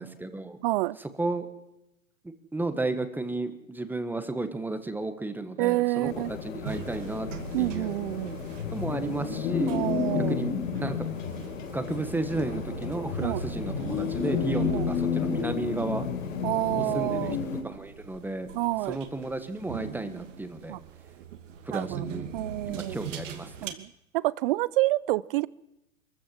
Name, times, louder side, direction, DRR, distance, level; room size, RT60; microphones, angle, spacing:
voice 1, 0.0-0.6 1.0-1.5 2.2-7.3 7.6-8.0 8.7-9.7 10.1-11.1 11.7-16.1 16.8-17.4 17.6-18.5 18.9-20.8 21.6-22.2 22.7-23.7, right 2 dB, 5° right, 10 dB, 1.5 m, -33 dB
voice 2, 0.6-1.0 5.6-6.3 7.5-8.4 9.7-10.4 13.2-13.4 14.7-14.9 16.4-17.4 18.5-19.0 20.7-20.8 21.7-22.1 22.3-23.0 23.6-25.5, right 18 dB, 40° right, 22 dB, 0.7 m, -28 dB
sound 1, 6.0-17.6, left 6 dB, 70° left, 4.2 m, -31 dB
sound 2, 6.7-23.7, right 6 dB, 65° right, 2.7 m, -41 dB
23.0 x 15.0 x 7.7 m, 0.92 s
hypercardioid pair, 125°, 41 cm